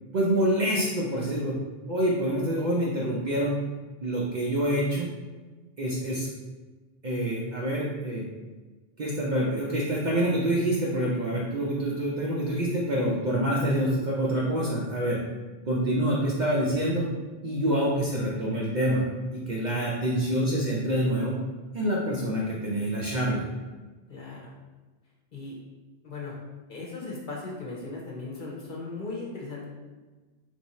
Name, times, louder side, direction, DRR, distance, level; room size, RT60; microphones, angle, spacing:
voice 1, 0.1-1.5 1.9-3.5 4.0-5.0 5.8-6.3 7.0-8.3 9.0-15.2 15.7-17.1 17.4-19.0 19.5-21.4 21.7-23.4, right 1 dB, 50° right, -5 dB, 0.6 m, -26 dB
voice 2, 24.1-24.5 25.3-25.6 26.0-26.3 26.7-29.7, left 3 dB, 45° left, -4 dB, 0.9 m, -37 dB
3.3 x 2.6 x 4.1 m, 1.3 s
omnidirectional pair, 1.2 m